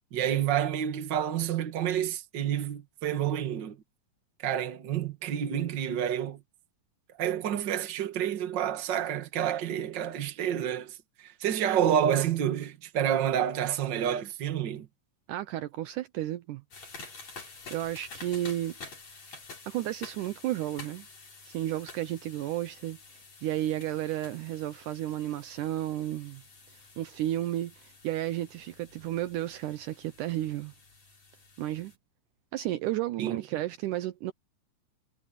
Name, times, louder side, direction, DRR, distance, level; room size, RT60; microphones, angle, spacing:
voice 1, 0.1-3.8 4.4-6.4 7.2-14.9 33.2-33.4, right 10 dB, 40° right, 1.8 m, -29 dB
voice 2, 15.3-16.6 17.7-18.7 19.7-21.1 21.5-23.0 23.4-26.4 27.0-30.7 31.6-31.9 32.5-34.3, right 14 dB, 75° right, 2.1 m, -32 dB
sound 1, 16.7-32.0, left 4 dB, 50° left, 6.5 m, -49 dB
omnidirectional pair, 4.0 m